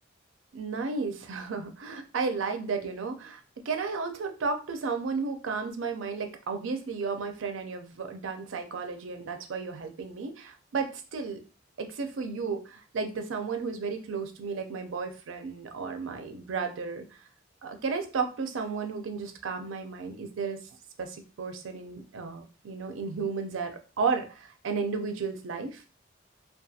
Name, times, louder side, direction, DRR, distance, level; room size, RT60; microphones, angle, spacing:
voice 1, 0.5-3.4 3.7-11.4 11.8-17.0 17.6-20.6 21.0-25.8, right 4 dB, 85° right, 6 dB, 0.4 m, -33 dB
2.3 x 2.3 x 2.6 m, 0.35 s
head